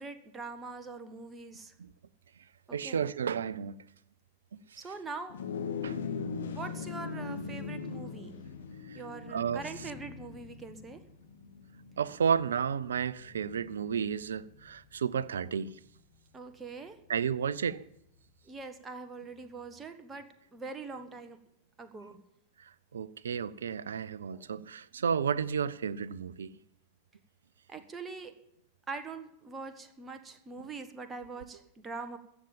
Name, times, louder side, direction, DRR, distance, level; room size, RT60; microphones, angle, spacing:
voice 1, 0.0-1.7 2.7-3.0 4.8-5.4 6.5-8.4 8.9-11.0 16.3-17.0 18.4-21.4 21.8-22.2 24.3-24.5 27.7-28.3 28.9-32.2, right 4 dB, 15° right, 1.4 m, -43 dB
voice 2, 2.7-3.8 4.5-4.6 5.8-6.0 6.4-6.6 8.9-9.0 9.3-9.6 12.0-15.8 17.1-17.9 22.6-26.6, right 7 dB, 65° right, 0.5 m, -32 dB
sound 1, 5.3-14.9, left 5 dB, 65° left, 1.6 m, -41 dB
15.0 x 7.2 x 9.1 m
figure-of-eight pair, 90°, 0 cm